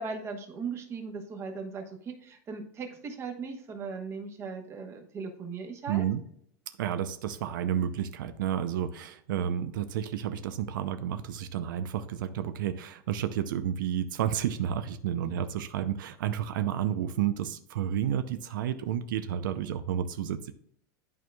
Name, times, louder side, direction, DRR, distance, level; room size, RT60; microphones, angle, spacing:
voice 1, 0.0-6.1 15.2-15.4, right 4 dB, 25° right, 4 dB, 1.1 m, -38 dB
voice 2, 5.9-6.2 6.8-20.5, right 10 dB, 90° right, 10 dB, 0.5 m, -31 dB
11.0 x 4.6 x 2.3 m, 0.67 s
supercardioid pair, 145°, 10 cm